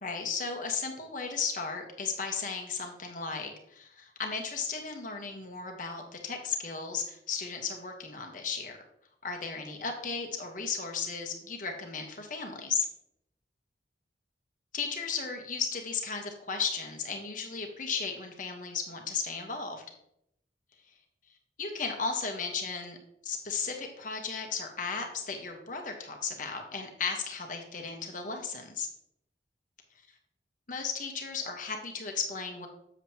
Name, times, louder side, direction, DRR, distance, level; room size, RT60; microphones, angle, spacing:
voice 1, 0.0-8.8 9.2-12.9 14.7-19.8 21.6-23.0 23.2-28.9 30.7-32.7, left 5 dB, 50° left, 3 dB, 1.2 m, -35 dB
7.4 x 7.2 x 2.9 m, 0.75 s
head